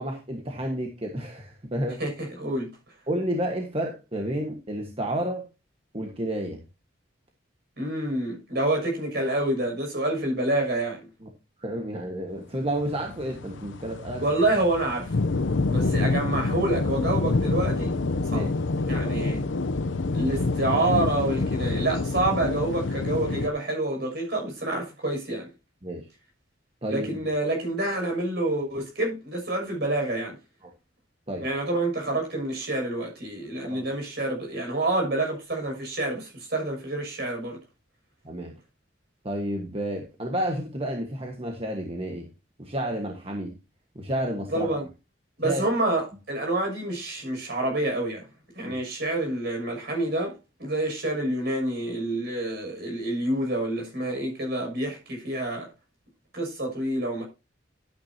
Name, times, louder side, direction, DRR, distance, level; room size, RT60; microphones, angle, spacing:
voice 1, 0.0-2.0 3.1-5.4 5.9-6.6 11.2-11.3 11.6-14.2 18.3-18.5 19.0-19.2 25.8-26.1 26.8-27.1 31.3-31.5 33.6-33.8 38.2-38.5 39.2-42.3 42.6-43.5 43.9-44.7 45.4-45.6 48.6-48.7, right 1 dB, 30° right, 1.5 m, -31 dB
voice 2, 2.0-2.7 7.8-11.1 14.2-15.1 15.7-18.0 18.2-18.4 18.9-19.4 20.1-25.5 26.9-30.3 31.4-37.6 44.5-44.9 45.4-48.2 48.5-50.3 50.6-55.7 56.3-57.2, right 1 dB, 55° right, 6.8 m, -27 dB
sound 1, 12.8-23.5, left 3 dB, 75° left, 0.7 m, -27 dB
12.5 x 9.2 x 2.8 m
head